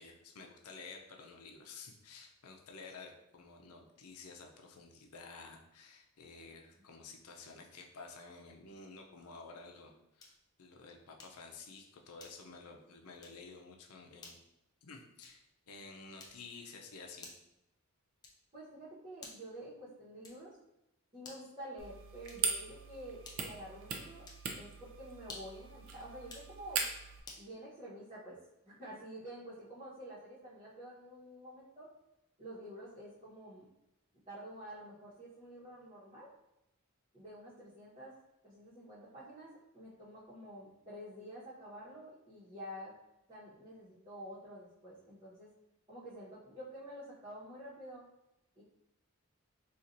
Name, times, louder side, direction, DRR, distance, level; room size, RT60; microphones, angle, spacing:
voice 1, 0.0-10.3 10.6-14.4 14.8-17.3, left 4 dB, 90° left, 2 dB, 0.6 m, -52 dB
sound 1, 10.2-10.5 11.2-11.5 12.2-12.6 13.2-13.5 14.2-14.5 15.2-15.5 16.2-16.6 17.2-17.6 18.2-18.6 19.2-19.6 20.2-20.6 21.2-21.6 22.2-22.6 23.2-23.6 24.2-24.5 25.2-25.6 26.2-26.5 27.2-27.5, left 3 dB, 20° left, 0.4 m, -53 dB
voice 2, 18.5-20.6 21.1-24.3 24.5-26.9 27.4-28.4 28.6-31.9 32.4-33.7 34.3-36.3 37.1-38.1 38.4-42.9 43.3-45.5 45.9-48.0 48.6-48.7, equal, 25° right, -11 dB, 1.1 m, -49 dB
sound 2, 21.8-27.2, right 5 dB, 60° right, 0.5 m, -40 dB
4.2 x 2.5 x 2.6 m, 0.89 s
head